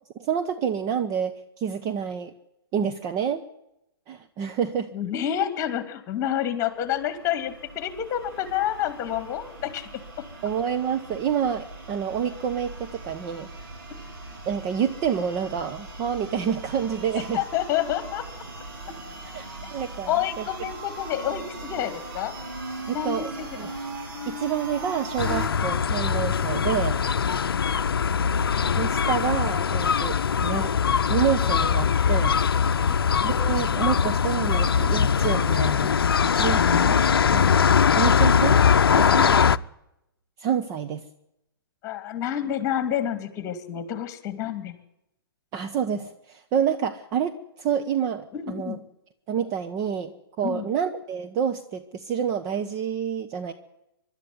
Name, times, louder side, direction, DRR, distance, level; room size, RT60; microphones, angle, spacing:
voice 1, 0.2-2.3 2.7-3.4 4.1-4.9 10.4-13.5 14.5-17.4 19.3-19.5 19.7-20.4 22.9-23.7 24.3-27.0 28.8-30.7 31.1-32.3 33.2-35.8 36.2-37.0 37.3-38.6 39.0-39.3 40.4-41.0 45.5-48.8 49.3-50.1 50.4-53.5, right 8 dB, 25° right, 7 dB, 1.1 m, -28 dB
voice 2, 4.9-10.0 17.3-18.3 18.6-19.0 20.0-22.4 22.9-23.3 23.6-23.7 27.4-27.6 32.9-33.0 39.1-39.2 41.8-44.7 48.3-48.8 50.4-50.7, left 10 dB, 25° left, 12 dB, 2.7 m, -29 dB
sound 1, 6.8-25.5, right 2 dB, 60° right, 7.8 m, -39 dB
sound 2, 25.2-39.6, left 7 dB, 70° left, 0.7 m, -21 dB
24.0 x 12.5 x 9.4 m, 0.86 s
figure-of-eight pair, 125°, 13 cm